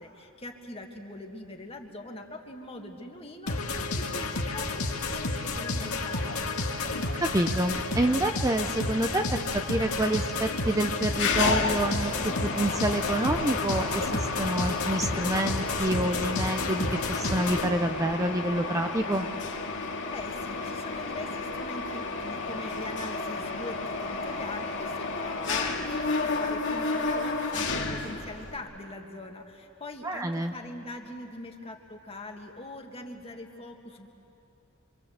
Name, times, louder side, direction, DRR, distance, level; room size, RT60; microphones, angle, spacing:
voice 1, 0.0-6.4 20.1-34.1, left 2 dB, 25° left, 3 dB, 2.1 m, -42 dB
sound 1, 3.5-17.7, left 3 dB, 80° left, 2.0 m, -31 dB
voice 2, 7.2-19.3 30.0-30.5, right 1 dB, 15° right, 5 dB, 0.7 m, -28 dB
Mechanisms, 11.1-28.6, left 3 dB, 60° left, 2.3 m, -32 dB
26.5 x 26.0 x 8.1 m, 2.8 s
head